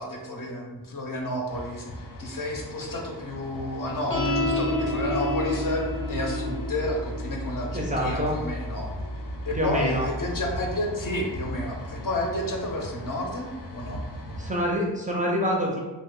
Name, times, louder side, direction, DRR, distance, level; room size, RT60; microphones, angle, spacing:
voice 1, 0.0-8.9 9.5-13.5 13.7-14.0, left 1 dB, 50° left, 0 dB, 0.6 m, -31 dB
sound 1, 1.5-14.7, left 1 dB, 85° left, 0.8 m, -40 dB
sound 2, 4.1-10.8, left 1 dB, 10° left, 0.7 m, -30 dB
voice 2, 7.7-8.4 9.5-10.1 14.4-15.8, equal, 20° right, -2 dB, 0.4 m, -26 dB
2.9 x 2.0 x 3.6 m, 1.2 s
wide cardioid pair, 105°, 42 cm